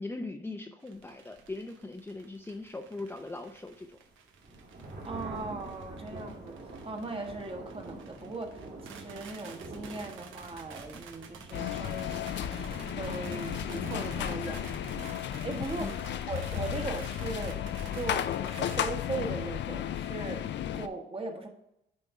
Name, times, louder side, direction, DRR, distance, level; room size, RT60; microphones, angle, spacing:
voice 1, 0.0-4.0 15.8-16.0, left 2 dB, 10° left, 4 dB, 0.6 m, -40 dB
sound 1, 0.8-18.9, right 6 dB, 80° right, 0.9 m, -51 dB
sound 2, 0.9-20.2, right 2 dB, 55° right, 2.5 m, -47 dB
voice 2, 5.0-6.6 6.8-14.7 15.0-15.2 15.4-16.0 16.3-17.6 17.9-20.5 20.7-21.5, right 3 dB, 30° right, 3 dB, 1.3 m, -39 dB
sound 3, 11.5-20.9, left 10 dB, 65° left, 0.5 m, -34 dB
9.7 x 3.5 x 4.6 m, 0.81 s
cardioid pair, 90°, 20 cm